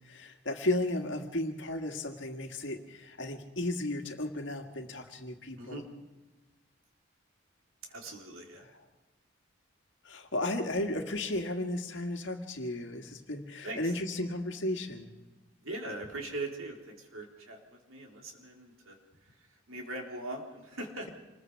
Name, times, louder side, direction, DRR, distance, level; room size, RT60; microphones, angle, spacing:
voice 1, 0.0-5.8 10.0-15.1, left 1 dB, 60° left, 4 dB, 2.0 m, -34 dB
voice 2, 7.9-8.7 13.6-13.9 15.6-19.0 19.3-21.1, right 2 dB, 90° right, 1 dB, 3.7 m, -41 dB
27.0 x 21.0 x 4.8 m, 1.2 s
head